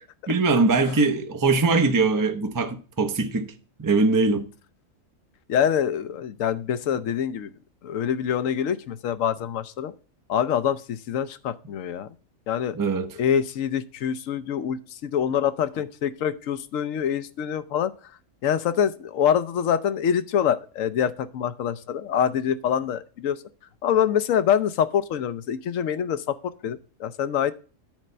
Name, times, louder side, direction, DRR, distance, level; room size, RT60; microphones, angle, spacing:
voice 1, 0.0-3.5 3.8-4.5 12.7-13.2, right 3 dB, 25° right, 0.4 m, -22 dB
voice 2, 5.5-7.5 7.8-9.9 10.3-12.1 12.5-12.7 13.2-17.9 18.4-23.4 23.8-27.5, left 8 dB, 75° left, 1.0 m, -25 dB
9.2 x 4.3 x 6.6 m
omnidirectional pair, 1.4 m